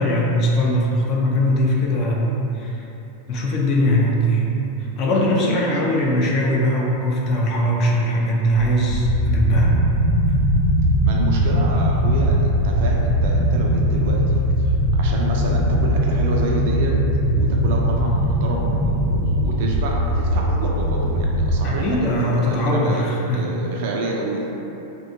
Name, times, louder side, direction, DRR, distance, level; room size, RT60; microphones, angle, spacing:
voice 1, 0.0-2.8 3.3-4.5 5.0-9.7 21.6-23.5, equal, 35° left, -3 dB, 0.4 m, -20 dB
voice 2, 4.9-5.6 11.0-17.0 17.3-23.1 23.3-24.4, right 2 dB, 50° right, -2 dB, 0.3 m, -29 dB
sound 1, 8.4-21.7, equal, 80° left, 0.7 m, -20 dB
2.7 x 2.2 x 2.6 m, 3.0 s
figure-of-eight pair, 90°, 0 cm